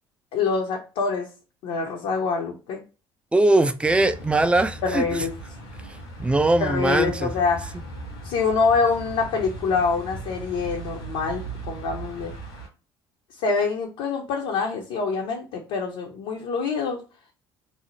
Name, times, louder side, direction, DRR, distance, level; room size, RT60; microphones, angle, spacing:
voice 1, 0.3-1.3 1.6-2.8 4.8-5.3 6.6-7.8 8.2-12.3 13.4-17.0, left 4 dB, 65° left, 0.6 m, -25 dB
voice 2, 3.3-5.0 6.2-7.3, right 2 dB, 10° right, 0.3 m, -20 dB
sound 1, 3.8-12.7, right 2 dB, 85° left, 1.3 m, -37 dB
2.6 x 2.0 x 3.0 m
hypercardioid pair, 60°, 13 cm